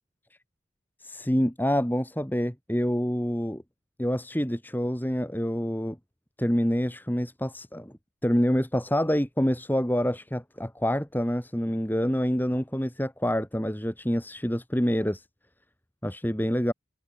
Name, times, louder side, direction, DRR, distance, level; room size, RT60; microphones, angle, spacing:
voice 1, 1.0-3.6 4.0-6.0 6.4-7.9 8.2-15.2 16.0-16.7, equal, 10° left, 2.6 m, -27 dB
head